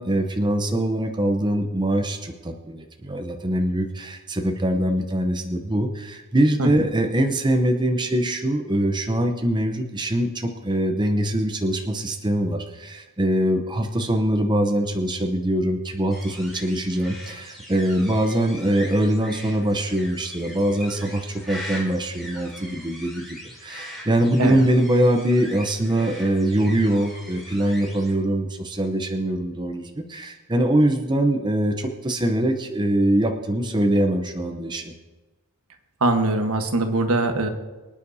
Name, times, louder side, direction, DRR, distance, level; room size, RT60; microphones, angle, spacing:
voice 1, 0.0-34.9, right 1 dB, 20° right, 4 dB, 0.7 m, -23 dB
sound 1, 16.1-28.1, left 1 dB, ahead, 3.9 m, -41 dB
voice 2, 36.0-37.5, right 2 dB, 70° right, 5 dB, 1.3 m, -21 dB
24.0 x 9.5 x 2.8 m, 1.2 s
head